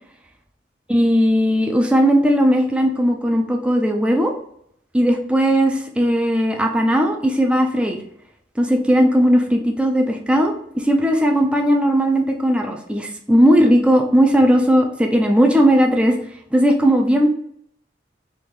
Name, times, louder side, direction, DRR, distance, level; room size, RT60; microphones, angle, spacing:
voice 1, 0.9-4.3 4.9-8.0 8.6-16.2 16.5-17.3, equal, 5° right, 2 dB, 0.4 m, -17 dB
3.5 x 2.4 x 3.1 m, 0.68 s
head